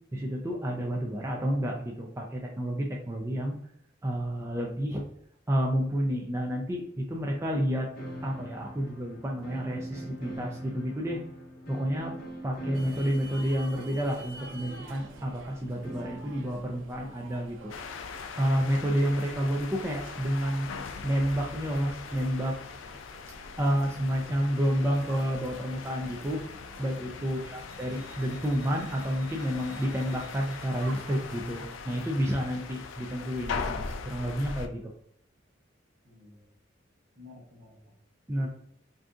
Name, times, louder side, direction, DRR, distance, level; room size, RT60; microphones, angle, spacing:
voice 1, 0.1-3.6 4.0-5.0 5.5-7.9 8.2-11.2 11.7-12.2 12.4-17.7 18.4-20.7 21.0-22.6 23.6-34.9 38.3-38.5, equal, 15° right, -1 dB, 0.4 m, -30 dB
sound 1, 7.9-16.4, equal, 50° left, 0.7 m, -42 dB
sound 2, 12.7-31.7, right 2 dB, 75° right, 0.5 m, -49 dB
sound 3, 17.7-34.7, left 5 dB, 75° left, 0.4 m, -41 dB
voice 2, 36.0-36.5 37.2-37.9, left 3 dB, 55° right, 0 dB, 0.9 m, -52 dB
2.6 x 2.4 x 3.5 m, 0.71 s
head